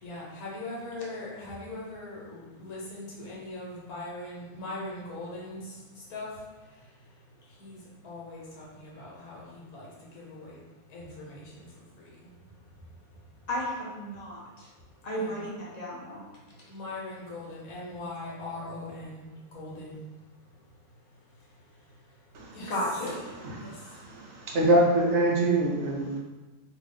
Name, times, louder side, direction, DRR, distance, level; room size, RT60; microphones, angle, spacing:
voice 1, 0.0-5.6 6.1-6.3 7.6-9.9 10.1-10.6 10.9-11.7 12.0-12.1 15.1-15.5 16.7-19.3 19.5-20.0 22.5-22.7 23.6-23.7, left 2 dB, 90° left, -5 dB, 1.3 m, -40 dB
voice 2, 13.5-14.7 15.0-16.2 22.7-23.2, equal, 50° left, -6 dB, 0.5 m, -33 dB
voice 3, 22.3-22.7 23.4-26.2, right 1 dB, 65° right, -1 dB, 0.7 m, -25 dB
2.7 x 2.3 x 3.5 m, 1.2 s
omnidirectional pair, 1.5 m